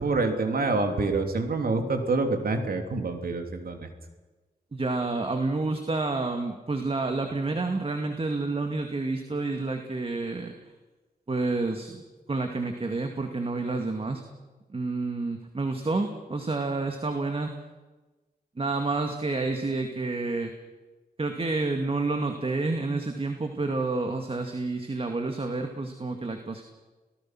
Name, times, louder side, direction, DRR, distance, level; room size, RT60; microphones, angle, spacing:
voice 1, 0.0-3.9, right 3 dB, 65° right, 5 dB, 3.3 m, -27 dB
voice 2, 4.7-10.7 11.3-12.0 12.3-14.2 14.7-17.6 18.6-20.5 21.2-26.6, right 3 dB, 35° right, 5 dB, 2.3 m, -29 dB
27.5 x 18.5 x 6.1 m, 1.2 s
cardioid pair, 70°, 17 cm